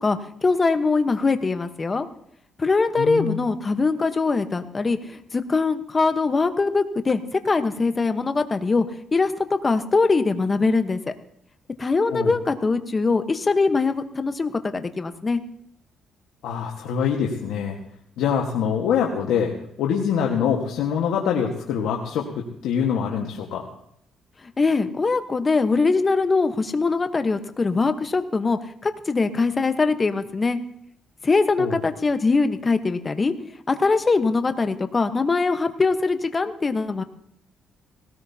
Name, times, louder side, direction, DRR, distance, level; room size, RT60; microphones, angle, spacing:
voice 1, 0.0-2.1 2.6-8.8 9.1-11.1 11.8-15.4 24.4-30.6 31.2-33.3 33.7-37.0, left 4 dB, 30° left, 9 dB, 1.1 m, -22 dB
voice 2, 3.0-3.4 12.1-12.3 16.4-17.8 18.2-19.5 19.8-23.6 31.6-31.8, left 7 dB, 85° left, -1 dB, 1.5 m, -24 dB
19.5 x 17.5 x 2.8 m, 0.72 s
cardioid pair, 90°, 0 cm